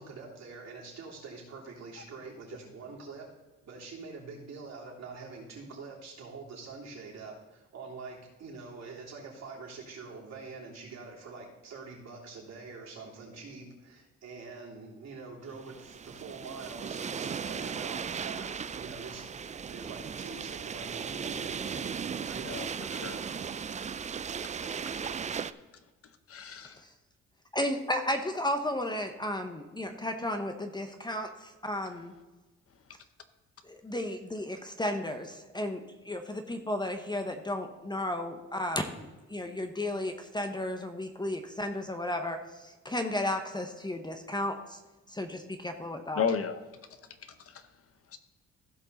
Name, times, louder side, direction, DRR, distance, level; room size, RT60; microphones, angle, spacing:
voice 1, 0.0-3.3 3.6-22.6, right 4 dB, 60° right, -3 dB, 3.4 m, -45 dB
sound 1, 15.6-25.5, right 6 dB, 25° right, 0.4 m, -37 dB
voice 2, 22.4-23.2 26.3-26.8 46.2-46.6 47.5-47.6 48.1-48.2, left 6 dB, 50° left, 10 dB, 0.9 m, -33 dB
voice 3, 27.5-32.1 33.6-44.8 45.1-46.3, left 1 dB, 15° left, 6 dB, 0.9 m, -34 dB
15.5 x 5.3 x 4.1 m, 1.2 s
cardioid pair, 90°, 30 cm